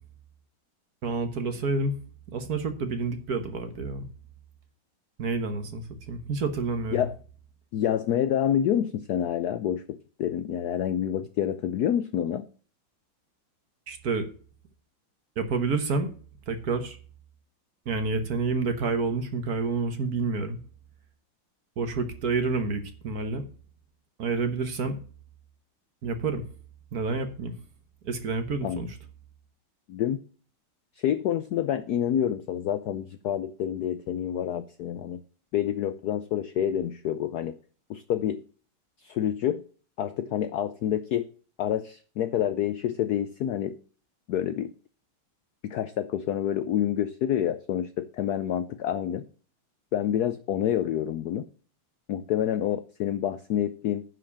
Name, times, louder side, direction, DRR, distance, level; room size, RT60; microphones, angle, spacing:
voice 1, 1.0-1.9 2.3-4.1 5.2-7.0 13.9-14.3 15.4-16.1 16.5-17.0 17.9-20.6 21.8-23.4 24.2-25.0 26.0-26.4 26.9-27.5 28.0-28.9, right 4 dB, 50° right, 1.4 m, -29 dB
voice 2, 7.7-12.4 28.6-28.8 29.9-30.2 31.0-35.2 35.5-37.6 37.9-38.4 39.0-39.6 40.0-41.3 41.6-43.8 44.3-44.7 45.6-49.3 49.9-51.5 52.1-54.0, left 10 dB, 80° left, 0.8 m, -28 dB
9.8 x 5.0 x 7.0 m
omnidirectional pair, 2.3 m